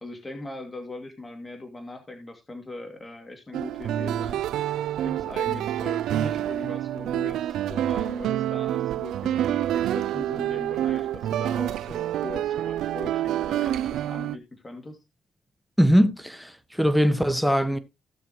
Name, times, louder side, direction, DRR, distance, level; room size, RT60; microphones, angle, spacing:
voice 1, 0.0-4.4 5.0-15.0, left 2 dB, 20° left, 2.5 m, -40 dB
sound 1, 3.5-14.4, right 12 dB, 80° right, 0.5 m, -27 dB
voice 2, 15.8-16.5 16.8-17.8, equal, ahead, 1.4 m, -20 dB
16.5 x 6.9 x 3.0 m
cardioid pair, 90°, 0 cm